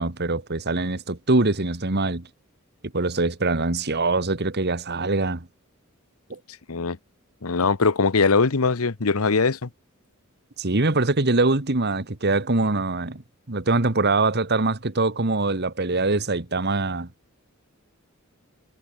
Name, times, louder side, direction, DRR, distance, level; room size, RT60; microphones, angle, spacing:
voice 1, 0.0-2.3 2.9-5.5 6.3-6.4 10.6-13.2 13.5-17.1, right 2 dB, 50° right, 1.8 m, -23 dB
voice 2, 7.4-9.7, left 4 dB, 90° left, 1.0 m, -21 dB
head